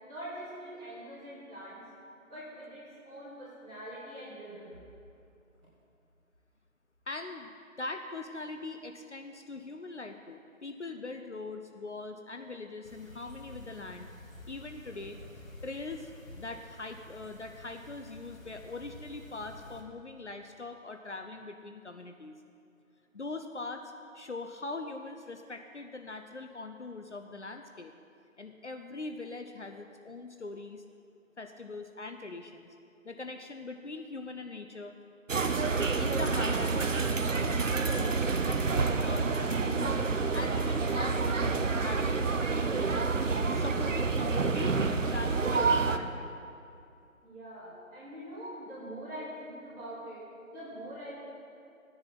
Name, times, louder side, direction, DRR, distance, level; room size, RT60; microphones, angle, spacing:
voice 1, 0.0-1.8 2.3-4.8 47.2-51.1, right 1 dB, 5° right, -20 dB, 1.6 m, -44 dB
voice 2, 7.1-14.1 14.5-22.3 23.1-23.8 24.1-27.9 28.4-30.8 31.4-32.7 33.0-34.9 36.0-37.5 37.9-39.3 39.6-42.3 42.5-46.4, left 3 dB, 60° left, 6 dB, 0.7 m, -42 dB
sound 1, 12.8-19.8, left 1 dB, 75° left, 2.1 m, -50 dB
sound 2, 35.3-46.0, right 4 dB, 65° right, 0.8 m, -28 dB
14.5 x 10.0 x 4.4 m, 2.5 s
figure-of-eight pair, 170°, 41 cm